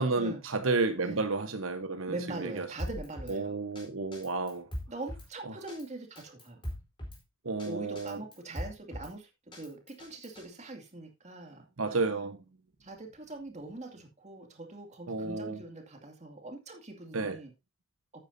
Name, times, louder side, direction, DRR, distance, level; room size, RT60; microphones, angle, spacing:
voice 1, 0.0-2.7 3.3-4.7 7.4-8.2 11.8-12.4 15.1-15.6 17.1-17.4, right 3 dB, 90° right, 1.1 m, -31 dB
voice 2, 2.1-3.6 4.9-6.6 7.6-9.3 9.6-12.1 12.8-17.5, right 2 dB, 35° right, 2.4 m, -42 dB
Drum kit, 2.8-3.4 3.8-3.9 4.1-5.3 5.7-5.8 6.2-7.2 7.6-7.7 8.0-9.1 9.5-10.4, equal, 25° left, 4.3 m, -40 dB
12.0 x 8.9 x 2.7 m
head